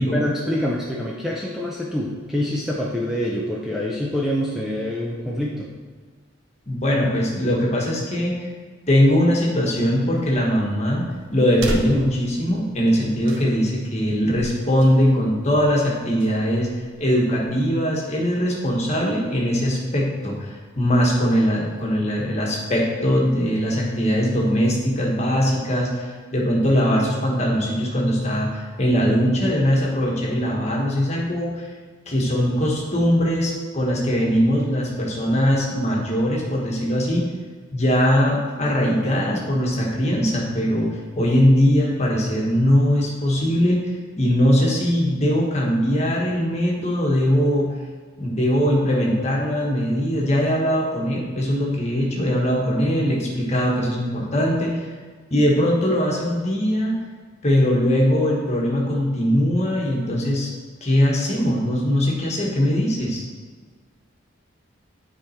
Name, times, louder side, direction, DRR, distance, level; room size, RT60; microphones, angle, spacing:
voice 1, 0.1-5.7, left 1 dB, ahead, -5 dB, 0.6 m, -26 dB
voice 2, 6.7-8.5 8.9-11.0 11.3-16.7 17.0-31.7 32.1-37.3 37.7-43.9 44.2-47.7 48.2-54.9 55.3-56.9 57.4-60.5 60.8-63.2, equal, 35° left, -3 dB, 1.3 m, -21 dB
sound 1, 10.2-17.6, right 1 dB, 70° right, 0.8 m, -37 dB
9.7 x 3.7 x 4.4 m, 1.5 s
head